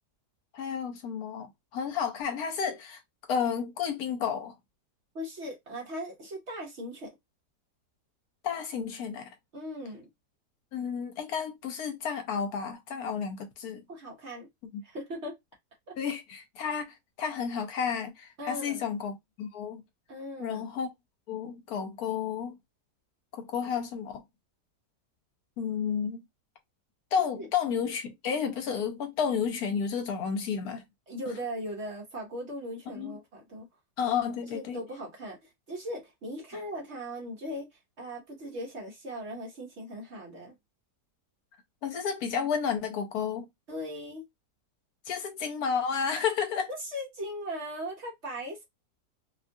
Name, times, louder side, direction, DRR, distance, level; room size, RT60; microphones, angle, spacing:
voice 1, 0.5-3.0 3.3-4.5 8.4-9.3 10.7-13.8 14.7-14.8 16.0-19.8 20.4-20.9 21.3-22.6 23.3-24.2 25.6-26.2 27.1-30.8 32.9-33.2 34.0-34.8 41.8-43.5 45.1-46.7, left 7 dB, 70° left, 1.1 m, -31 dB
voice 2, 5.1-7.1 9.5-10.1 13.9-14.5 14.8-15.4 15.9-16.0 18.4-18.8 20.1-20.6 27.4-27.5 31.1-33.7 34.5-37.7 38.0-40.5 43.7-44.2 46.7-48.6, equal, 50° right, 0.9 m, -38 dB
2.9 x 2.3 x 2.5 m
omnidirectional pair, 1.8 m